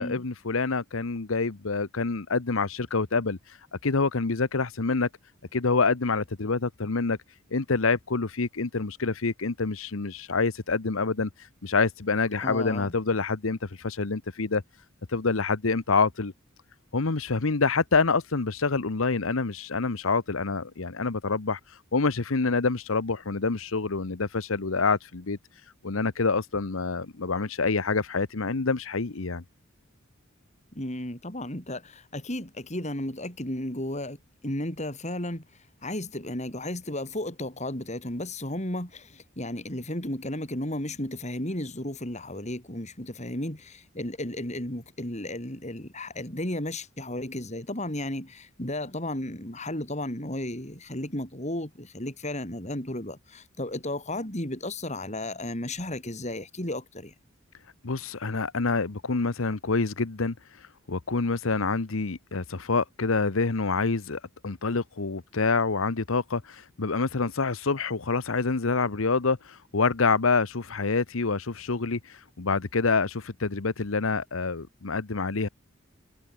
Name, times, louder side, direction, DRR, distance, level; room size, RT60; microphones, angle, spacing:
voice 1, 0.0-5.1 5.5-7.2 7.5-14.6 15.1-16.3 16.9-25.4 25.8-29.4 57.8-75.5, left 4 dB, 75° left, 1.0 m, -27 dB
voice 2, 12.4-12.9 30.7-34.2 34.4-35.4 35.8-57.1, left 1 dB, 35° left, 4.9 m, -34 dB
head